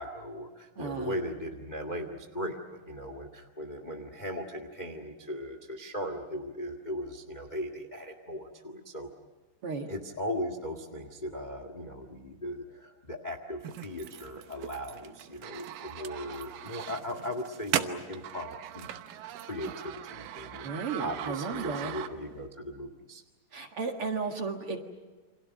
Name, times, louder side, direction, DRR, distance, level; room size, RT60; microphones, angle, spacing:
voice 1, 0.0-9.1 9.9-20.7 21.0-23.2, equal, 20° left, 6 dB, 1.1 m, -38 dB
voice 2, 0.8-1.2 9.6-9.9 20.6-21.9 23.5-24.8, right 4 dB, 50° right, 4 dB, 2.3 m, -34 dB
sound 1, 13.6-22.5, right 11 dB, 80° right, 2.6 m, -39 dB
29.0 x 26.0 x 6.4 m, 1.2 s
omnidirectional pair, 3.8 m